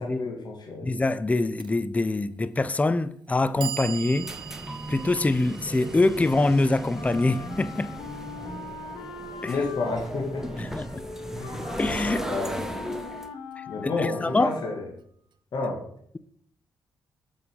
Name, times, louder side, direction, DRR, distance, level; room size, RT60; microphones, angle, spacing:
voice 1, 0.0-0.9 9.5-10.6 11.4-11.6 12.3-12.6 13.7-14.9 15.5-15.8, left 3 dB, 55° left, 1.8 m, -30 dB
voice 2, 0.8-4.3 4.9-7.9 9.4-9.5 10.6-11.0 11.8-12.2 13.6-14.5, left 2 dB, 15° left, 0.4 m, -24 dB
Clock, 1.6-1.7 2.7-2.8 3.3-9.3, right 10 dB, 65° right, 0.6 m, -42 dB
sound 1, 4.0-13.3, right 1 dB, 5° right, 0.9 m, -36 dB
Wind instrument woodwind instrument, 6.9-15.0, left 4 dB, 80° left, 1.1 m, -40 dB
6.8 x 5.5 x 5.2 m
supercardioid pair, 60°, 9 cm